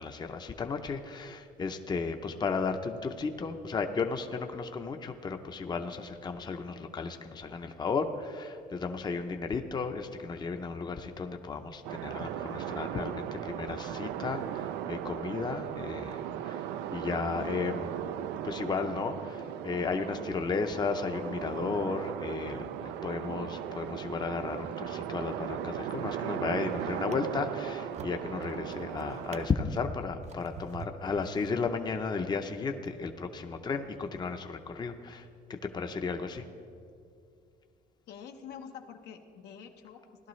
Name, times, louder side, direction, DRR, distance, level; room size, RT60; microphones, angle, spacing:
voice 1, 0.0-18.0 18.4-35.2 35.5-36.5, left 4 dB, 25° left, 6 dB, 0.6 m, -34 dB
sound 1, 11.8-29.5, right 10 dB, 90° right, 0.4 m, -37 dB
Drawer open or close, 26.0-26.4 26.9-32.1 32.8-33.0, right 6 dB, 45° right, 0.6 m, -49 dB
voice 2, 38.1-40.3, left 7 dB, 80° left, 4 dB, 0.9 m, -47 dB
17.0 x 11.5 x 3.1 m, 2.4 s
cardioid pair, 110°, 17 cm